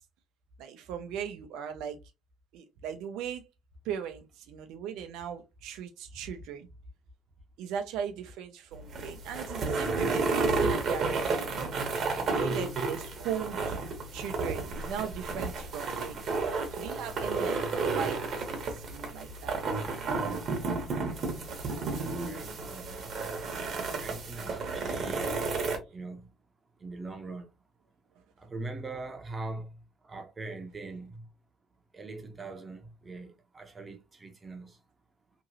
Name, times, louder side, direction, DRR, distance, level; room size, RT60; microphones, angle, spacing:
voice 1, 0.6-2.0 2.5-3.4 3.8-6.7 7.6-11.8 12.3-13.8 14.1-16.2 16.8-19.6, right 8 dB, 80° right, 0.5 m, -38 dB
sound 1, 8.7-25.8, right 3 dB, 55° right, 1.0 m, -32 dB
voice 2, 20.7-21.2 21.7-23.1 24.0-25.3 25.9-26.3 26.8-27.5 28.4-29.7 30.0-31.2 31.9-34.8, right 3 dB, 30° right, 0.8 m, -42 dB
3.0 x 2.7 x 2.6 m
supercardioid pair, 80°, 0 cm